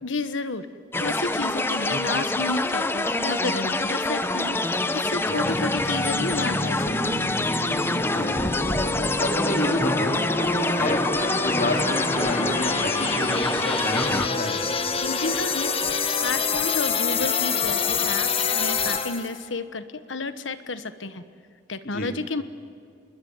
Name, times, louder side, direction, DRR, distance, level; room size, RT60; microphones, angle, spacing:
voice 1, 0.0-0.7 1.0-4.6 4.9-7.1 15.0-15.7 16.2-21.2 21.7-22.4, left 3 dB, 85° left, 11 dB, 1.3 m, -31 dB
sound 1, 0.9-14.3, left 2 dB, 10° left, 0.7 m, -26 dB
voice 2, 5.3-5.6 8.1-8.6 9.2-14.5 21.9-22.1, left 1 dB, 45° left, 2 dB, 3.2 m, -30 dB
sound 2, 5.4-19.4, left 4 dB, 30° left, 1.4 m, -27 dB
27.0 x 21.0 x 8.0 m, 2.3 s
head